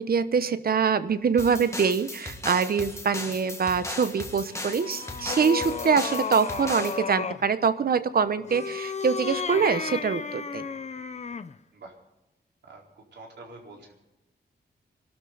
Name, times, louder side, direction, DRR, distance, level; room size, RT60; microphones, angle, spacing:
voice 1, 0.0-10.6, right 6 dB, 55° right, 12 dB, 1.0 m, -24 dB
sound 1, 1.4-7.0, left 1 dB, 15° left, 1.8 m, -37 dB
sound 2, 4.5-7.5 8.4-11.6, left 5 dB, 40° left, 0.7 m, -33 dB
voice 2, 13.1-13.9, right 2 dB, 80° right, -1 dB, 4.4 m, -46 dB
25.0 x 12.5 x 4.0 m, 0.96 s
wide cardioid pair, 145°, 18 cm